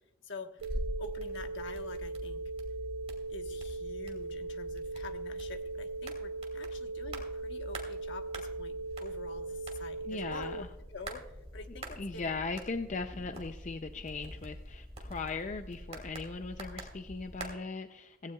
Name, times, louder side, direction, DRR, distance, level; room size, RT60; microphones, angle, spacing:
voice 1, 0.2-2.4 3.3-12.3, left 3 dB, 60° left, 5 dB, 1.2 m, -47 dB
sound 1, 0.6-17.5, equal, 30° right, 2.5 m, -45 dB
sound 2, 0.6-10.6, right 3 dB, 85° right, 0.3 m, -39 dB
voice 2, 10.1-10.7 12.0-18.3, left 4 dB, 35° left, 8 dB, 0.5 m, -38 dB
17.0 x 16.0 x 2.3 m, 1.0 s
head